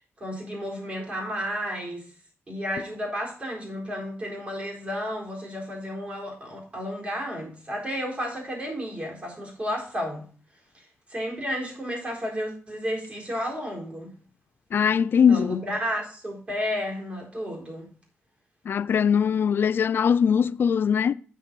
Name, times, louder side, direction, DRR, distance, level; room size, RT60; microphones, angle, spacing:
voice 1, 0.2-2.0 2.5-10.2 11.1-14.1 15.3-17.9, equal, 30° right, 4.2 m, -32 dB
voice 2, 14.7-15.6 18.7-21.1, left 7 dB, 55° left, 0.4 m, -21 dB
8.7 x 6.6 x 5.3 m
wide cardioid pair, 135°, 4 cm